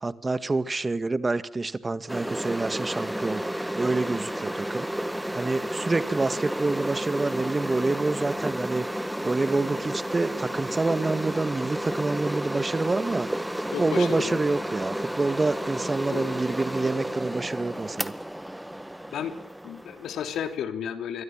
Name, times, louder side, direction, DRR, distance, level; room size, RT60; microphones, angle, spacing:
voice 1, 0.0-3.4 3.7-4.9 5.3-18.1, right 3 dB, 25° right, 15 dB, 1.7 m, -27 dB
sound 1, 2.1-20.6, right 1 dB, 5° right, 1.6 m, -32 dB
voice 2, 13.7-14.4 16.1-16.3 19.1-19.3 19.6-21.2, left 8 dB, 65° left, 9 dB, 3.3 m, -32 dB
26.5 x 23.0 x 7.5 m, 0.66 s
hypercardioid pair, 55°, 0 cm